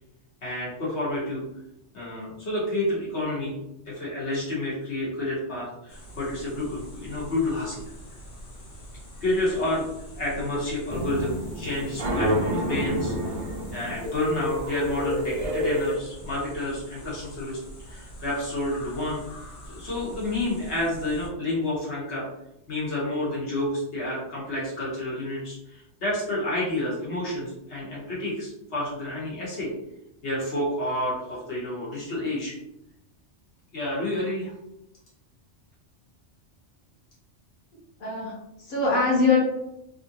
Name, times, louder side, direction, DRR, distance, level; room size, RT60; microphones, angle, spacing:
voice 1, 0.4-1.4 1.9-3.5 3.9-7.8 9.2-9.9 10.1-13.1 13.7-17.6 17.9-19.2 19.7-22.3 22.7-29.7 30.2-32.5 33.7-34.5, left 1 dB, 70° left, -6 dB, 1.5 m, -29 dB
sound 1, 5.9-21.3, equal, 85° left, 1.2 m, -44 dB
sound 2, 10.9-16.0, equal, 60° right, 0.3 m, -28 dB
voice 2, 38.0-39.4, left 4 dB, 50° left, -6 dB, 1.1 m, -23 dB
3.4 x 2.6 x 2.7 m, 0.85 s
omnidirectional pair, 1.2 m